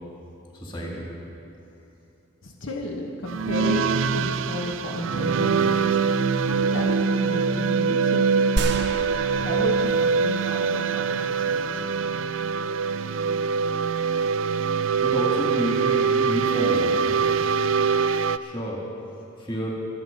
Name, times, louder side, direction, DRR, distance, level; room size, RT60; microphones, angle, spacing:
voice 1, 0.5-1.1 15.0-17.5 18.4-18.8 19.4-19.7, right 1 dB, 25° left, -3 dB, 2.4 m, -30 dB
voice 2, 2.4-6.0 6.4-8.5 9.4-11.6, left 1 dB, 75° left, 1 dB, 1.3 m, -33 dB
sound 1, 3.3-18.4, right 5 dB, 70° right, 0.4 m, -23 dB
sound 2, 8.6-10.8, right 2 dB, 55° right, 0.9 m, -30 dB
24.0 x 8.1 x 5.4 m, 2.8 s
head